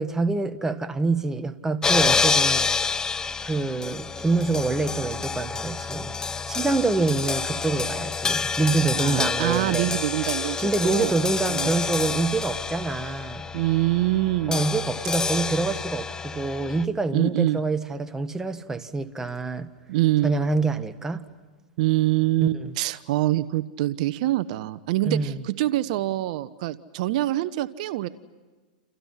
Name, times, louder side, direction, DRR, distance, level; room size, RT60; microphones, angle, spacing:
voice 1, 0.0-2.6 3.4-6.1 6.5-10.0 10.6-13.5 14.5-19.7 20.2-21.3 22.5-22.7 25.0-25.4, right 3 dB, 10° right, 1.5 m, -26 dB
sound 1, 1.8-16.8, left 5 dB, 15° left, 0.9 m, -28 dB
voice 2, 9.0-11.2 11.5-11.7 13.5-14.6 17.1-17.6 19.9-20.4 21.8-28.1, right 16 dB, 60° right, 1.0 m, -25 dB
29.5 x 29.0 x 5.8 m
hypercardioid pair, 120°, 5 cm